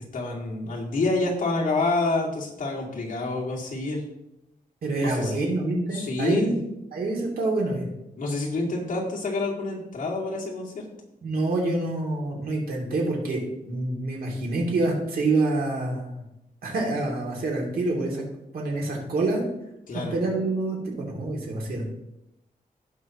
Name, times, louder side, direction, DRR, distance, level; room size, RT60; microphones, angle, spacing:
voice 1, 0.1-4.0 5.0-5.6 5.9-6.5 8.2-10.8 19.9-20.1, left 2 dB, 65° left, -3 dB, 2.6 m, -28 dB
voice 2, 4.8-6.5 6.9-7.8 11.2-13.4 13.7-16.2 16.6-18.2 18.5-19.4 19.9-21.8, right 2 dB, 90° right, -2 dB, 2.9 m, -26 dB
17.0 x 5.8 x 3.1 m, 0.86 s
wide cardioid pair, 145°, 15 cm